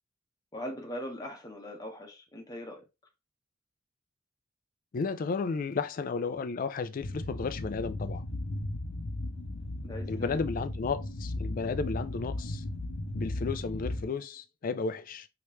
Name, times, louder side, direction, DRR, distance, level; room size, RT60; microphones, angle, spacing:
voice 1, 0.5-2.8 9.8-10.4 13.3-13.4, equal, 20° left, 0.9 m, -40 dB
voice 2, 4.9-8.2 10.1-12.6 13.1-15.3, left 4 dB, 45° left, 0.4 m, -33 dB
sound 1, 7.0-14.1, left 1 dB, 90° left, 0.8 m, -36 dB
3.2 x 2.9 x 3.0 m
head